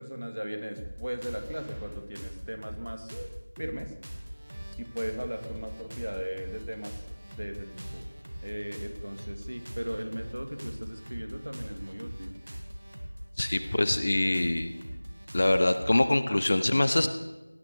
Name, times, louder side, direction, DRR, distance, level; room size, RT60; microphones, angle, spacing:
voice 1, 0.0-3.2 3.6-3.9 4.8-7.1 7.4-8.0 8.4-12.3, equal, 65° right, 6 dB, 2.3 m, -37 dB
sound 1, 0.7-16.2, equal, 30° right, 1.8 m, -42 dB
voice 2, 13.4-14.7 15.3-17.1, left 1 dB, 25° left, 10 dB, 0.6 m, -24 dB
18.0 x 9.6 x 6.9 m, 1.0 s
figure-of-eight pair, 175°, 0 cm